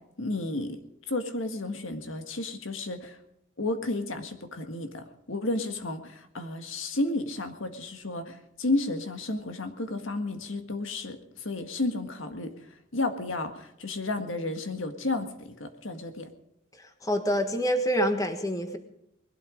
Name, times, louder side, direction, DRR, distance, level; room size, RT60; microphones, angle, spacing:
voice 1, 0.2-0.8 1.1-3.2 3.6-12.5 12.9-16.3, left 2 dB, 80° left, 7 dB, 1.8 m, -32 dB
voice 2, 16.8-18.8, equal, 15° left, 6 dB, 1.4 m, -27 dB
20.5 x 12.5 x 5.2 m, 0.80 s
head